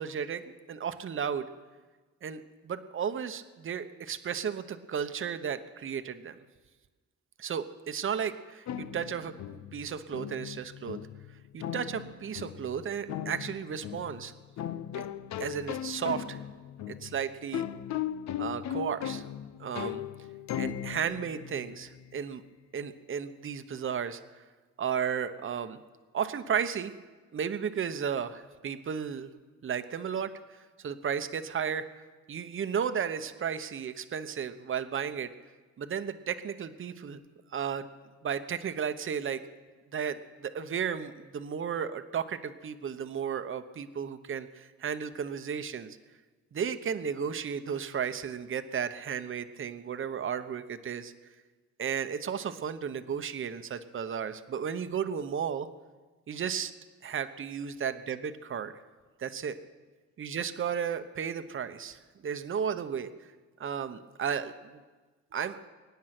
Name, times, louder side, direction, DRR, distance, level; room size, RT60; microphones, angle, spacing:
voice 1, 0.0-1.4 2.2-6.4 7.4-11.0 11.5-14.3 14.9-15.1 15.4-16.4 16.9-17.6 18.4-19.2 19.6-20.0 20.6-22.4 22.7-24.2 24.8-25.8 26.1-26.9 27.3-29.3 29.6-31.9 32.3-35.3 35.8-37.2 37.5-37.8 38.2-39.4 39.9-46.0 46.5-51.1 51.8-55.7 56.3-56.7 57.0-58.7 59.2-59.6 60.2-63.1 63.6-64.8 65.3-65.6, right 7 dB, 45° right, 10 dB, 1.0 m, -34 dB
sound 1, 8.7-22.2, left 10 dB, 65° left, 0.7 m, -38 dB
23.5 x 9.5 x 6.1 m, 1.3 s
cardioid pair, 90°, 30 cm